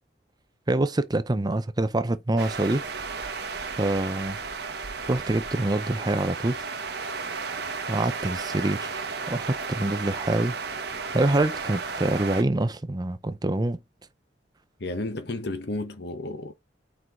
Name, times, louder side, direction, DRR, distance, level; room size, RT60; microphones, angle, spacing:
voice 1, 0.7-2.8 3.8-4.4 5.1-6.6 7.9-10.6 11.1-13.8, right 2 dB, 20° right, 0.6 m, -25 dB
sound 1, 2.4-12.4, right 4 dB, 65° right, 1.2 m, -34 dB
voice 2, 14.8-16.5, left 2 dB, 65° left, 1.2 m, -32 dB
8.3 x 4.7 x 3.8 m
head